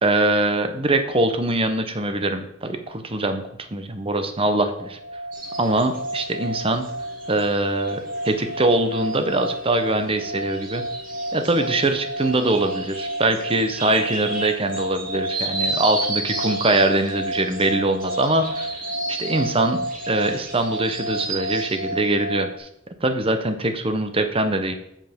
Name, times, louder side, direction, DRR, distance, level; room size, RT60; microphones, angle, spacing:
voice 1, 0.0-5.0 5.6-6.9 7.3-10.8 11.3-18.7 19.1-22.7 23.0-24.7, right 2 dB, 30° right, 8 dB, 1.0 m, -23 dB
sound 1, 4.8-22.6, right 1 dB, 80° right, 1.2 m, -31 dB
sound 2, 5.3-21.9, right 3 dB, 50° right, 2.5 m, -34 dB
8.0 x 7.5 x 5.3 m, 0.77 s
head